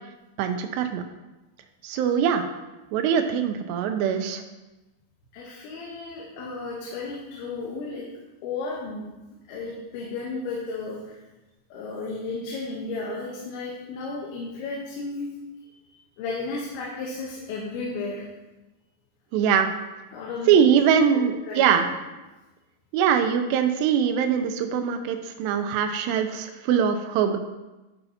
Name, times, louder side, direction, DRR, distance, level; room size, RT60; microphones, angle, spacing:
voice 1, 0.4-1.0 1.8-2.4 2.9-4.4 19.3-19.7 20.5-21.9 22.9-27.4, right 8 dB, 85° right, 6 dB, 2.6 m, -22 dB
voice 2, 5.3-8.1 8.4-9.1 9.5-11.2 11.7-15.3 15.6-18.3 20.1-20.7 21.1-21.9, left 3 dB, 90° left, -4 dB, 3.4 m, -34 dB
11.5 x 5.5 x 2.8 m, 1.1 s
omnidirectional pair, 5.1 m